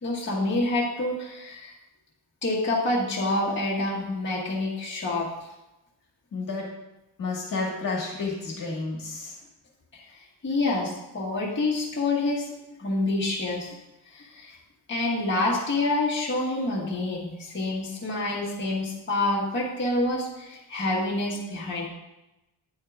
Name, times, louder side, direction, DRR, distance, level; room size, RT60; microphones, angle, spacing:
voice 1, 0.0-1.7 2.4-5.3 10.1-12.5 12.8-13.8 14.1-14.6 14.9-21.9, left 2 dB, 25° left, -6 dB, 1.5 m, -27 dB
voice 2, 6.3-6.6 7.2-9.3, left 3 dB, 50° left, -2 dB, 1.6 m, -31 dB
9.1 x 8.5 x 2.4 m, 0.96 s
wide cardioid pair, 170°, 42 cm